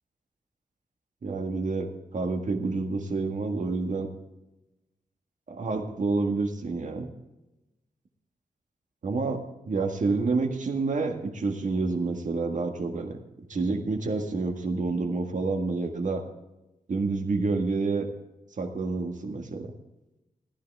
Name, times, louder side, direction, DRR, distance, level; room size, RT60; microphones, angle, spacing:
voice 1, 1.2-4.1 5.5-7.1 9.0-13.2 13.5-16.2 16.9-18.1 18.6-19.7, right 3 dB, 55° right, 4 dB, 1.7 m, -28 dB
15.0 x 13.0 x 3.5 m, 0.98 s
wide cardioid pair, 150°, 15 cm